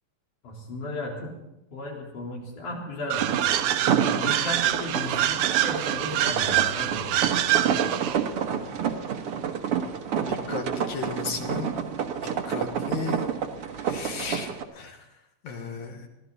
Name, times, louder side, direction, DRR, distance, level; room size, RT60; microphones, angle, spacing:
voice 1, 0.4-1.3 1.7-3.3 4.2-7.3, left 2 dB, 90° left, -2 dB, 5.3 m, -35 dB
sound 1, 3.1-8.3, right 12 dB, 90° right, 2.3 m, -25 dB
sound 2, 3.2-14.6, right 7 dB, 60° right, 1.9 m, -29 dB
voice 2, 10.1-11.8 12.5-13.3 13.8-15.0 15.4-16.1, left 5 dB, 70° left, 3 dB, 3.0 m, -35 dB
23.5 x 15.5 x 4.0 m, 0.92 s
omnidirectional pair, 3.4 m